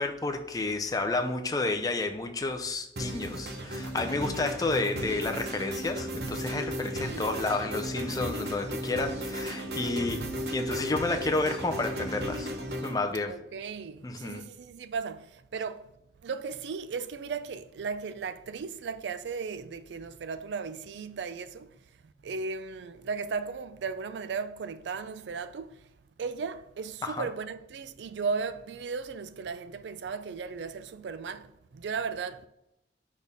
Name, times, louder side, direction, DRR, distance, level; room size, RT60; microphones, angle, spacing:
voice 1, 0.0-10.2 10.5-12.5 12.8-13.3 14.0-14.4 27.0-27.3, left 3 dB, 20° left, 0.5 m, -31 dB
sound 1, 3.0-13.0, equal, 60° right, 0.8 m, -35 dB
voice 2, 13.3-15.9 16.2-21.8 22.0-25.8 26.2-32.5, right 5 dB, 80° right, 0.4 m, -36 dB
6.2 x 3.6 x 5.3 m
head